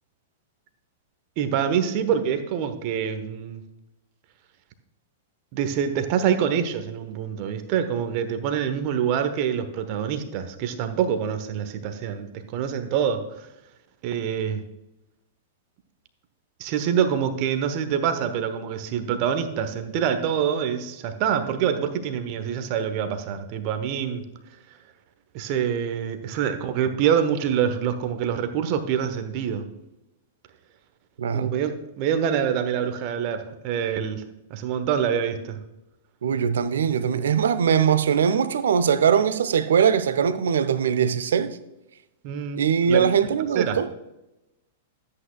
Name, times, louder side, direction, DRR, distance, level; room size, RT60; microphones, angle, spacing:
voice 1, 1.4-3.6 5.5-13.5 14.0-14.6 16.6-24.2 25.3-29.6 31.3-34.2 34.5-35.6 42.2-42.6 42.9-43.0 43.5-43.8, right 8 dB, 40° right, 1.0 m, -25 dB
voice 2, 31.2-31.6 36.2-41.6 42.6-43.9, right 7 dB, 60° right, 0.6 m, -21 dB
13.0 x 8.6 x 2.3 m
figure-of-eight pair, 100°, 0 cm